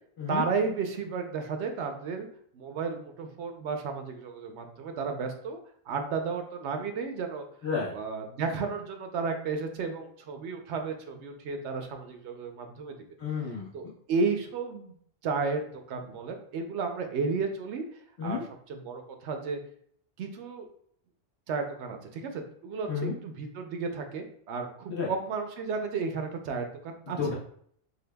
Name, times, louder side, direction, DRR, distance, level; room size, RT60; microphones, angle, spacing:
voice 1, 0.3-2.3 2.5-5.6 5.9-7.4 7.9-12.9 13.7-15.0 15.2-17.8 18.2-18.4 18.7-19.6 20.2-20.7 21.5-27.3, right 4 dB, 85° right, 5 dB, 0.9 m, -33 dB
voice 2, 7.6-7.9 13.2-13.7 18.2-18.4 22.9-23.1 24.9-25.1 27.1-27.3, left 5 dB, 70° left, -7 dB, 1.7 m, -31 dB
6.5 x 2.3 x 2.2 m, 0.64 s
omnidirectional pair, 1.1 m